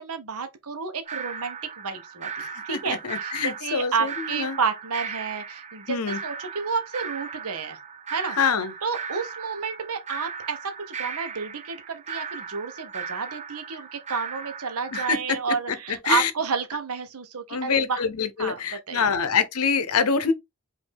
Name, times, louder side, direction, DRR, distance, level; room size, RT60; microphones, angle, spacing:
voice 1, 0.0-6.0 6.2-7.8 8.1-8.4 8.8-18.0 18.4-18.6 18.9-19.0, right 5 dB, 80° right, 0.8 m, -30 dB
sound 1, 1.1-15.1, right 6 dB, 30° right, 0.6 m, -37 dB
voice 2, 2.4-4.6 5.9-6.2 8.3-8.7 14.9-16.3 17.5-20.3, left 6 dB, 80° left, 0.7 m, -26 dB
5.2 x 2.6 x 3.3 m
head